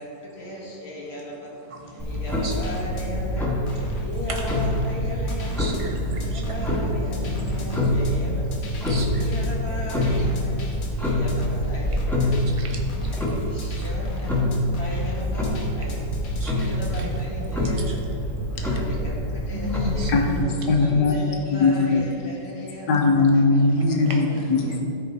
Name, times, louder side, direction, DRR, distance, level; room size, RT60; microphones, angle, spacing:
voice 1, 0.0-1.5 2.0-3.5 3.9-5.8 6.2-8.5 9.1-10.5 11.0-12.3 12.6-12.8 13.3-14.3 14.8-15.5 15.7-16.0 16.4-18.0 18.5-20.1 20.8-22.9 23.5-23.7 24.1-24.4, left 1 dB, 40° left, -3 dB, 1.5 m, -37 dB
voice 2, 1.7-2.1 2.4-2.5 5.3-8.4 8.8-9.2 12.5-13.8 16.4-17.1 17.5-17.7 19.5-20.5 24.1-24.2 24.6-24.7, equal, 30° right, 0 dB, 0.7 m, -36 dB
Clock, 2.0-20.4, left 1 dB, ahead, 1.1 m, -26 dB
sound 1, 2.3-17.1, equal, 55° left, 1.4 m, -37 dB
voice 3, 20.1-21.2 21.6-22.0 22.9-24.8, left 3 dB, 75° left, 2 dB, 1.6 m, -20 dB
13.0 x 5.0 x 4.2 m, 2.9 s
omnidirectional pair, 1.9 m